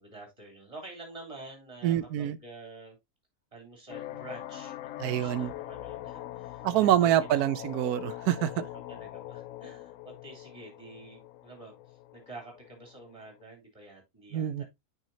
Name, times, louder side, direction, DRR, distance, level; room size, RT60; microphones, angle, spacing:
voice 1, 0.0-3.0 3.5-7.9 8.9-14.6, right 2 dB, 20° right, 3.3 m, -48 dB
voice 2, 1.8-2.4 5.0-5.5 6.6-8.7 14.3-14.6, right 12 dB, 85° right, 1.1 m, -26 dB
sound 1, 3.9-13.4, left 14 dB, 70° left, 0.9 m, -43 dB
9.0 x 5.2 x 2.7 m
omnidirectional pair, 1.6 m